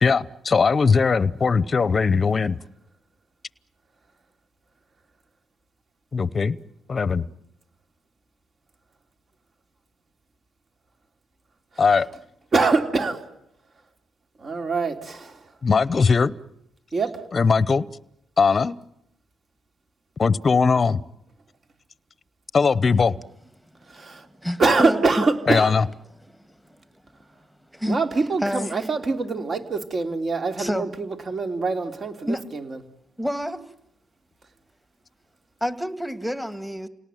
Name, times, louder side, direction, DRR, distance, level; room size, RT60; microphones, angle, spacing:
voice 1, 0.0-2.6 6.1-6.6 6.9-7.2 11.8-12.1 15.6-16.3 17.3-17.9 18.4-18.8 20.2-21.0 22.5-23.1 25.5-25.9, left 5 dB, 35° left, 18 dB, 0.9 m, -19 dB
voice 2, 12.5-13.2 14.4-15.4 16.9-17.2 23.9-24.3 24.6-25.7 27.9-32.8, right 3 dB, 40° right, 6 dB, 3.4 m, -24 dB
voice 3, 24.0-25.2 27.7-28.0 28.4-28.8 30.6-30.9 32.2-32.4 33.2-33.6 35.6-36.9, equal, 5° right, 11 dB, 2.1 m, -28 dB
28.5 x 18.5 x 9.2 m, 0.82 s
cardioid pair, 90°, 0 cm